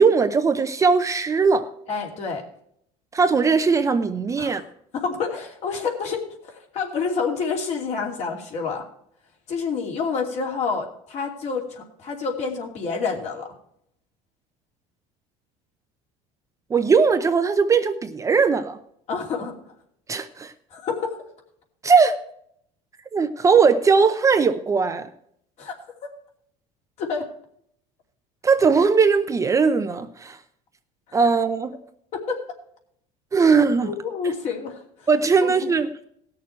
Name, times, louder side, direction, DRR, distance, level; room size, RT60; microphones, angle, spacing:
voice 1, 0.0-1.7 3.1-4.6 16.7-18.8 20.1-20.5 21.8-22.1 23.1-25.1 28.4-30.4 31.1-31.7 33.3-33.9 35.1-35.9, right 5 dB, 20° right, 0.6 m, -19 dB
voice 2, 1.9-2.4 4.4-4.6 4.9-8.8 9.5-13.5 19.1-19.5 20.7-21.1 25.6-25.8 27.0-27.2 32.1-32.4 33.8-34.8 35.4-35.7, left 5 dB, 50° left, 2.8 m, -28 dB
17.0 x 6.7 x 4.4 m
cardioid pair, 130°, 15 cm